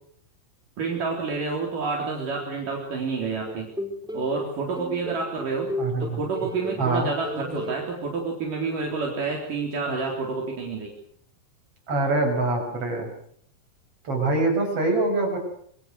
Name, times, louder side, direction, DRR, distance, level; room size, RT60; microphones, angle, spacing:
voice 1, 0.8-3.7 4.1-5.7 6.0-10.9, right 4 dB, 60° right, 0 dB, 5.3 m, -29 dB
sound 1, 3.5-4.3 4.8-7.0 7.2-7.8, equal, ahead, 4.1 m, -33 dB
voice 2, 5.8-6.2 6.8-7.1 11.9-13.1 14.0-15.4, right 2 dB, 40° right, 3 dB, 7.6 m, -24 dB
26.0 x 24.0 x 6.7 m, 0.64 s
omnidirectional pair, 4.2 m